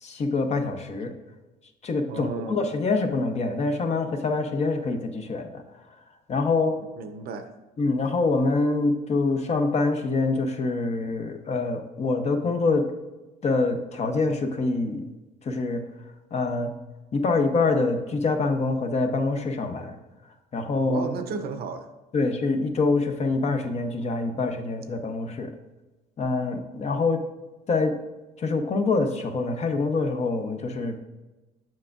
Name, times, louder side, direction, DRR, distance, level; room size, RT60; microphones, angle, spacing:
voice 1, 0.0-1.1 1.8-5.6 6.3-6.7 7.8-12.9 13.4-15.1 15.4-15.8 16.3-16.7 17.1-19.9 20.5-21.1 22.1-25.5 26.2-27.2 27.7-27.9 28.4-31.0, left 3 dB, 40° left, 6 dB, 0.8 m, -25 dB
voice 2, 2.1-2.7 6.9-7.5 20.8-21.9, right 4 dB, 65° right, 8 dB, 0.7 m, -34 dB
7.5 x 5.8 x 2.4 m, 1.1 s
cardioid pair, 110°, 17 cm